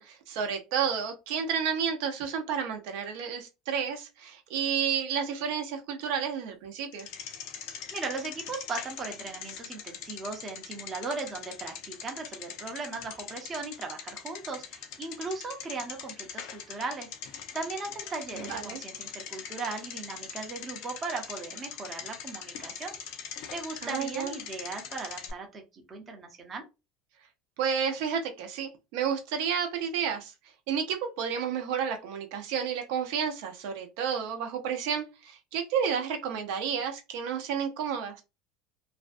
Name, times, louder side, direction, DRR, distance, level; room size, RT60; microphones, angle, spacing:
voice 1, 0.0-7.1 18.3-18.8 23.8-24.3 27.6-30.3 30.7-38.2, right 7 dB, 70° right, 0.6 m, -31 dB
Bicycle, 6.9-25.3, left 8 dB, 60° left, 0.5 m, -42 dB
voice 2, 7.9-23.0 23.5-26.6, right 3 dB, 20° right, 0.6 m, -38 dB
2.5 x 2.2 x 2.4 m
cardioid pair, 155°, 0 cm